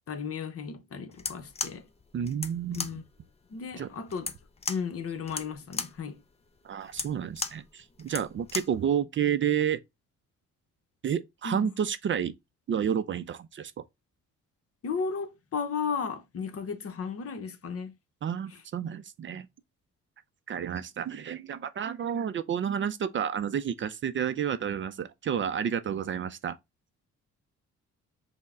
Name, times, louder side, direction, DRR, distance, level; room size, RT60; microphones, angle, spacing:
voice 1, 0.1-1.9 2.7-3.0 3.5-4.3 4.7-6.2 11.4-11.7 14.8-17.9, left 5 dB, 50° left, 0.8 m, -34 dB
sound 1, 1.1-8.8, left 4 dB, 20° left, 0.5 m, -37 dB
voice 2, 2.1-3.0 3.8-3.9 6.6-9.8 11.0-12.3 12.7-13.7 18.2-19.5 20.5-26.6, right 8 dB, 40° right, 0.4 m, -30 dB
5.3 x 2.1 x 3.5 m
cardioid pair, 90°, 30 cm